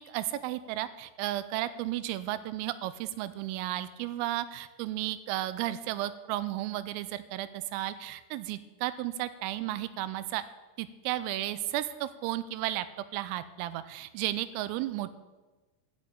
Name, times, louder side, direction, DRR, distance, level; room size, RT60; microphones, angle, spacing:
voice 1, 0.0-10.4 10.8-12.9 13.1-15.2, right 14 dB, 85° right, 14 dB, 3.3 m, -33 dB
12.5 x 7.0 x 8.9 m, 1.2 s
omnidirectional pair, 5.9 m